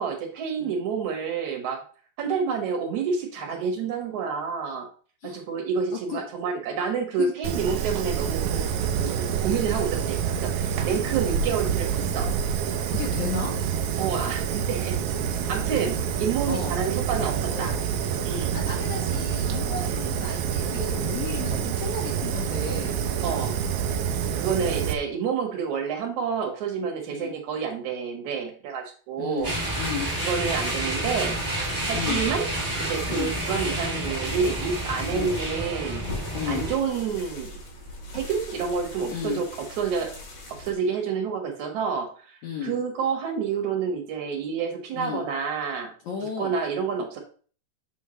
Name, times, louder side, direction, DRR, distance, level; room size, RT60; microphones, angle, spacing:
voice 1, 0.0-1.8 2.2-4.9 5.2-12.3 14.0-15.0 15.3-17.7 18.2-18.6 23.2-23.6 24.3-29.5 30.2-31.4 31.9-32.5 32.7-36.0 36.5-37.5 38.1-39.5 39.8-40.1 40.6-45.9 46.4-47.2, right 6 dB, 60° right, 3 dB, 2.6 m, -29 dB
voice 2, 5.9-6.2 7.2-7.3 11.0-11.1 12.9-13.5 16.5-16.8 17.5-17.8 18.5-23.0 27.1-27.3 29.2-30.1 31.9-32.2 33.1-33.3 35.1-35.3 36.3-36.7 39.1-39.4 42.4-42.7 44.9-45.2 46.0-46.6, left 6 dB, 65° left, 0 dB, 1.9 m, -34 dB
Fire, 7.4-24.9, right 8 dB, 80° right, 1.7 m, -27 dB
sound 1, 29.4-40.7, left 2 dB, 85° left, 4.7 m, -41 dB
sound 2, 29.4-36.8, right 1 dB, 10° right, 1.3 m, -29 dB
8.3 x 5.7 x 3.2 m, 0.42 s
omnidirectional pair, 4.2 m